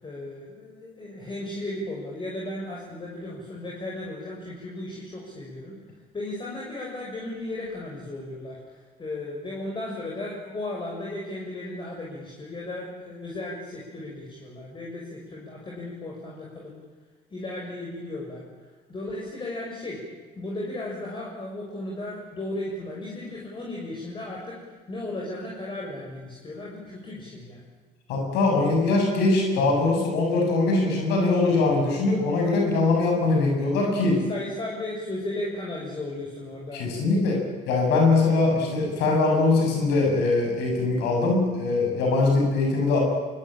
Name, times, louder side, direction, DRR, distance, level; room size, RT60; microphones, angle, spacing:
voice 1, 0.0-5.8 6.1-16.7 17.3-18.4 18.9-20.0 20.4-24.6 24.9-27.6 34.0-37.0, left 1 dB, 30° left, -2 dB, 6.5 m, -35 dB
voice 2, 28.1-34.2 36.7-43.0, left 3 dB, 85° left, 1 dB, 6.8 m, -22 dB
24.5 x 22.0 x 8.9 m, 1.4 s
cardioid pair, 110°, 17 cm